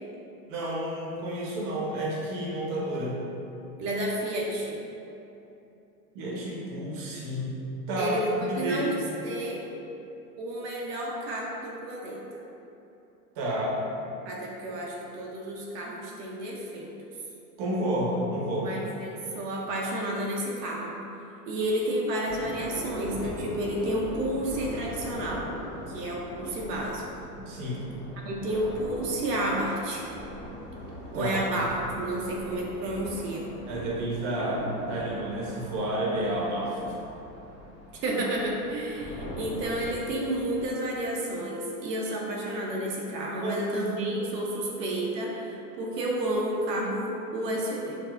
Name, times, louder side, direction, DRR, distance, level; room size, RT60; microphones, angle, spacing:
voice 1, 0.5-3.2 6.1-7.5 7.9-8.1 8.5-8.9 13.4-13.8 17.6-18.8 27.4-27.9 31.1-31.4 33.7-36.8 43.4-44.0, right 1 dB, 45° right, -4 dB, 0.8 m, -30 dB
voice 2, 3.8-4.8 8.0-8.9 9.2-9.6 10.4-12.4 14.2-16.9 18.6-20.9 21.5-25.4 25.9-27.0 28.2-30.1 31.1-33.5 38.0-48.0, right 1 dB, 85° right, -3 dB, 0.7 m, -31 dB
sound 1, 22.3-40.7, left 1 dB, 10° left, 0.5 m, -41 dB
4.8 x 2.0 x 2.3 m, 2.9 s
hypercardioid pair, 125°, 48 cm